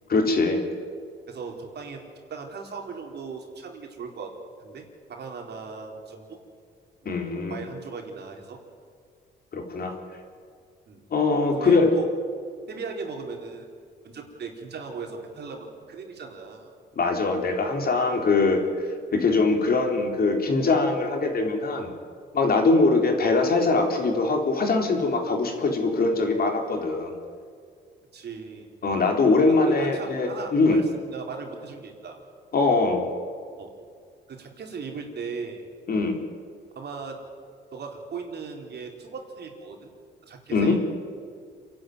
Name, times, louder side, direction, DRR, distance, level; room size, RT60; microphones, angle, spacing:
voice 1, 0.1-0.6 7.1-7.6 9.5-9.9 11.1-11.9 17.0-18.6 19.1-21.9 22.3-27.1 28.8-30.8 32.5-33.0 35.9-36.2 40.5-40.8, left 3 dB, 50° left, 3 dB, 4.0 m, -22 dB
voice 2, 1.3-2.0 2.3-4.3 4.6-6.4 7.5-8.6 10.9-11.0 11.5-12.0 12.7-13.7 14.0-16.7 28.1-28.7 29.5-32.2 33.6-33.7 34.3-35.6 36.7-37.3 37.7-39.9 40.2-40.8, right 5 dB, 55° right, 2 dB, 4.2 m, -37 dB
27.5 x 11.5 x 9.5 m, 2.1 s
cardioid pair, 90°, 20 cm